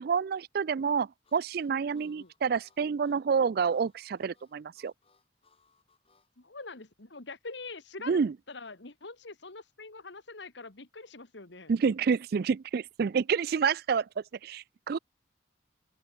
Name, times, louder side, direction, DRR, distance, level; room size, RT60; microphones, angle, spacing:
voice 1, 0.0-4.9 8.1-8.3 11.7-15.0, right 6 dB, 55° right, 0.4 m, -28 dB
Harmonica, 1.2-6.3, left 5 dB, 30° left, 7.6 m, -68 dB
voice 2, 1.9-2.3 6.4-8.2 8.5-11.7, left 3 dB, 70° left, 1.9 m, -44 dB
open air
head